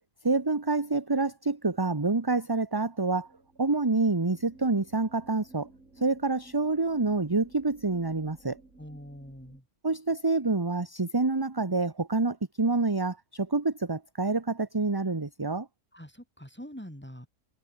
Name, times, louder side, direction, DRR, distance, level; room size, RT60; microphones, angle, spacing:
voice 1, 0.2-3.3 3.6-5.7 6.0-8.6 9.8-15.7, right 3 dB, 15° right, 1.1 m, -27 dB
sound 1, 2.9-9.6, right 2 dB, 60° right, 4.7 m, -56 dB
voice 2, 8.8-9.6 15.9-17.3, equal, 5° left, 6.1 m, -44 dB
omnidirectional pair, 1.5 m